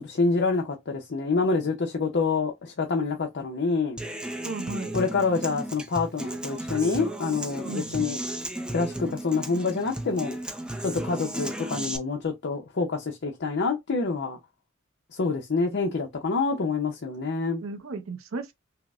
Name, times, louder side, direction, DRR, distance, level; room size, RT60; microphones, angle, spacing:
voice 1, 0.0-4.0 4.9-8.2 8.7-10.4 10.8-14.4 15.1-17.6, left 4 dB, 60° left, 0.6 m, -27 dB
Human voice / Acoustic guitar, 4.0-12.0, right 1 dB, 5° right, 0.4 m, -34 dB
voice 2, 4.4-5.0 7.6-8.1 17.6-18.5, right 3 dB, 75° right, 0.5 m, -35 dB
5.6 x 2.0 x 2.4 m
head